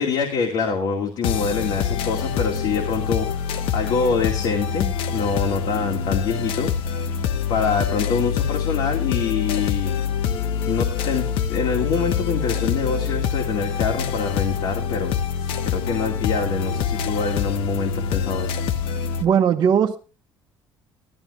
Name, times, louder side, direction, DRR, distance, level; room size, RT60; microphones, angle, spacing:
voice 1, 0.0-6.7 7.5-9.9 10.7-18.6, left 5 dB, 70° left, 1 dB, 2.5 m, -25 dB
sound 1, 1.2-19.2, left 7 dB, 85° left, 1.0 m, -25 dB
voice 2, 19.2-20.0, right 8 dB, 50° right, 0 dB, 1.0 m, -18 dB
14.5 x 13.0 x 3.2 m, 0.32 s
cardioid pair, 125°, 9 cm